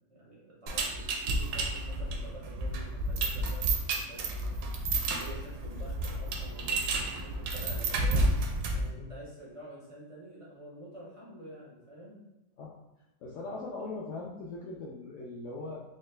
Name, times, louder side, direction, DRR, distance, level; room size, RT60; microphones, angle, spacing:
voice 1, 0.1-4.7 5.2-8.3 8.9-12.2 13.8-13.9, right 1 dB, 60° right, -6 dB, 0.3 m, -48 dB
sound 1, 0.7-8.9, right 2 dB, 75° right, 1.0 m, -31 dB
voice 2, 8.6-9.1 12.6-12.7 13.2-15.8, left 3 dB, 75° left, -4 dB, 0.7 m, -40 dB
4.1 x 2.1 x 3.2 m, 0.96 s
omnidirectional pair, 1.8 m